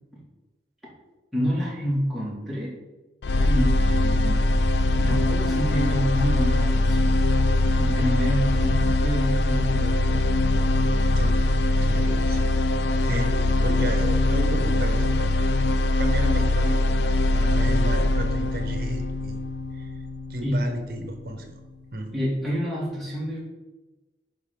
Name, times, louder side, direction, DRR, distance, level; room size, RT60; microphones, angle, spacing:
voice 1, 1.3-2.7 3.3-4.5 4.9-7.1 7.8-10.3 20.4-20.7 22.1-23.4, equal, ahead, -7 dB, 2.0 m, -28 dB
sound 1, 3.2-21.2, left 2 dB, 70° left, 0.4 m, -22 dB
voice 2, 11.8-12.6 13.0-15.3 16.0-16.9 17.3-19.4 19.7-19.9 20.3-21.6 21.9-22.1, right 1 dB, 55° right, 5 dB, 1.0 m, -33 dB
10.5 x 3.7 x 3.9 m, 1.2 s
head